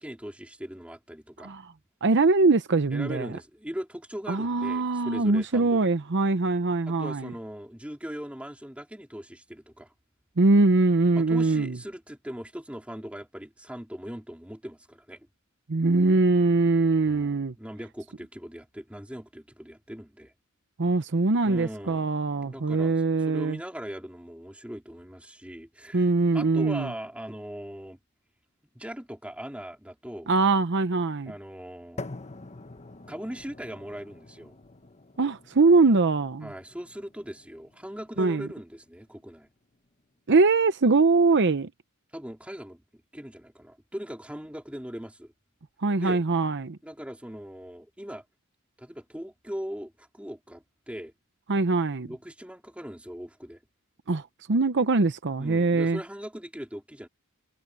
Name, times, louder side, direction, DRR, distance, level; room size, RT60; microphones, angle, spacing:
voice 1, 0.0-1.5 2.9-5.8 6.9-9.9 11.1-15.3 17.1-20.3 21.4-22.1 22.4-22.9 23.3-26.1 26.3-28.0 28.7-30.3 31.3-32.1 33.1-34.5 36.4-39.5 42.1-42.8 43.1-45.3 46.0-46.2 46.8-48.2 48.8-51.1 52.0-53.6 55.4-57.1, equal, 5° right, 2.8 m, -40 dB
voice 2, 1.4-1.7 2.0-3.3 4.3-7.3 10.4-11.8 15.7-17.5 20.8-23.6 25.9-26.9 30.3-31.3 35.2-36.5 38.2-38.5 40.3-41.7 45.8-46.8 51.5-52.1 54.1-56.0, right 3 dB, 55° right, 0.8 m, -22 dB
sound 1, 32.0-40.0, left 2 dB, 30° left, 1.2 m, -46 dB
head